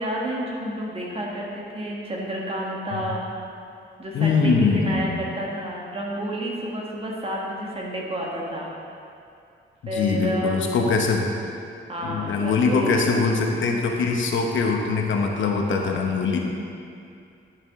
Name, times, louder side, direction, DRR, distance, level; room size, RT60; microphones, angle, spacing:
voice 1, 0.0-3.2 4.0-8.7 9.9-10.7 11.9-12.9, right 1 dB, 30° right, -3 dB, 1.5 m, -30 dB
voice 2, 4.1-5.2 9.8-11.3 12.0-16.4, left 4 dB, 80° left, 1 dB, 1.0 m, -22 dB
10.5 x 7.2 x 3.7 m, 2.5 s
cardioid pair, 120°, 20 cm